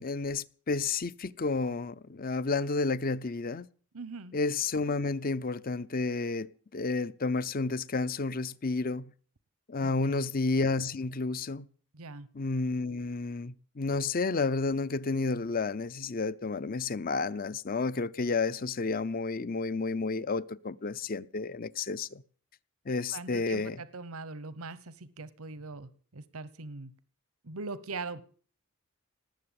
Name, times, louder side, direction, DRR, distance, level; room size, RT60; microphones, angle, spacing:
voice 1, 0.0-3.7 4.3-9.1 9.7-11.7 12.3-22.2 22.9-23.8, left 3 dB, 40° left, 0.6 m, -31 dB
voice 2, 3.9-4.3 9.8-10.3 11.9-12.3 23.1-26.9 27.4-28.2, right 3 dB, 90° right, 1.0 m, -41 dB
19.0 x 7.7 x 8.8 m
head